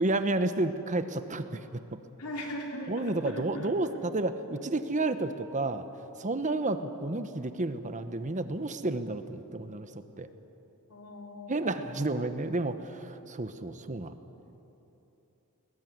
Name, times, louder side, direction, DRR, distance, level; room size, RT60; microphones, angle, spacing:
voice 1, 0.0-1.8 2.9-5.9 6.2-9.9 10.2-10.3 11.5-14.1, right 2 dB, 35° right, 10 dB, 1.0 m, -31 dB
voice 2, 2.2-3.7 10.9-12.0, left 1 dB, 85° left, 0 dB, 3.7 m, -39 dB
21.0 x 19.5 x 9.4 m, 3.0 s
head